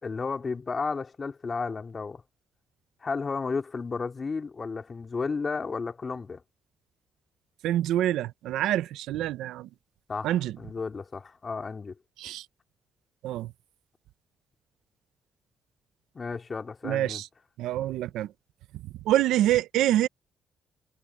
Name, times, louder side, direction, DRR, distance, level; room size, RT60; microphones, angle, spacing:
voice 1, 0.0-2.2 3.0-6.4 10.1-11.9 16.1-17.2, left 4 dB, 35° left, 2.9 m, -33 dB
voice 2, 7.6-9.7 10.2-10.6 12.2-12.5 13.2-13.5 16.8-17.3 17.6-18.3 18.7-20.1, right 13 dB, 85° right, 0.8 m, -26 dB
cardioid pair, 90°, 0 cm